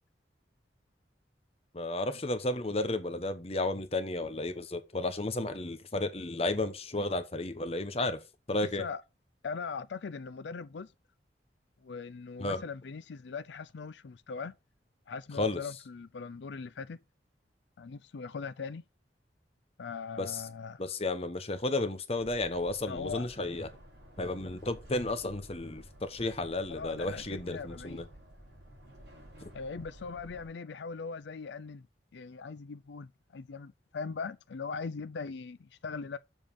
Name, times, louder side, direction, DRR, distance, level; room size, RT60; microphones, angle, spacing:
voice 1, 1.7-8.2 8.5-8.8 12.4-12.6 15.4-15.6 20.2-20.4 20.8-23.7 24.2-28.0, left 2 dB, 35° left, 1.0 m, -33 dB
voice 2, 9.4-10.9 11.8-14.5 15.1-17.0 17.8-18.8 19.8-20.8 22.9-23.3 26.7-28.1 29.5-31.8 32.1-36.2, left 5 dB, 75° left, 0.4 m, -40 dB
sound 1, 22.1-30.5, right 1 dB, 70° right, 3.9 m, -52 dB
7.2 x 5.3 x 5.3 m
head